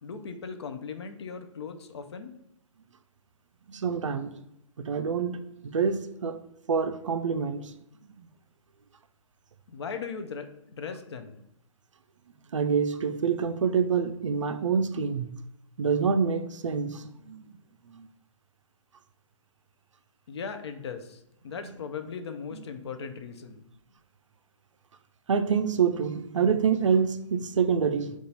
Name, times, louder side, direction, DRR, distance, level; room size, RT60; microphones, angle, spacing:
voice 1, 0.0-2.3 9.7-11.4 20.3-23.6, left 6 dB, 55° left, 0.5 m, -38 dB
voice 2, 3.7-4.4 4.8-6.4 6.7-7.7 8.2-8.3 12.5-15.3 15.8-17.5 17.9-18.1 22.5-22.6 25.3-28.1, right 6 dB, 70° right, 0.4 m, -27 dB
3.8 x 2.4 x 4.1 m
figure-of-eight pair, 120°, 17 cm